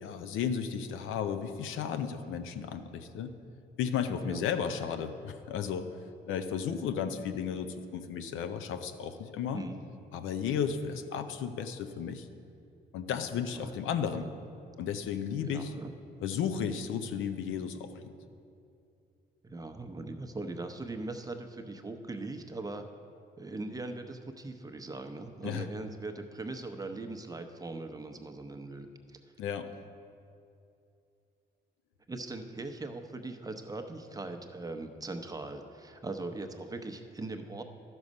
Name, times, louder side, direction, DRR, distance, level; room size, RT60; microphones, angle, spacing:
voice 1, 0.0-3.3 3.8-5.9 6.3-9.6 10.1-12.3 12.9-14.3 14.8-15.7 16.2-18.1 25.4-25.7 29.4-29.7, left 7 dB, 85° left, 8 dB, 0.6 m, -34 dB
voice 2, 15.4-15.9 19.4-22.8 23.4-29.2 32.1-37.6, right 2 dB, 20° right, 5 dB, 0.7 m, -40 dB
12.0 x 6.3 x 5.3 m, 2.6 s
cardioid pair, 90°, 20 cm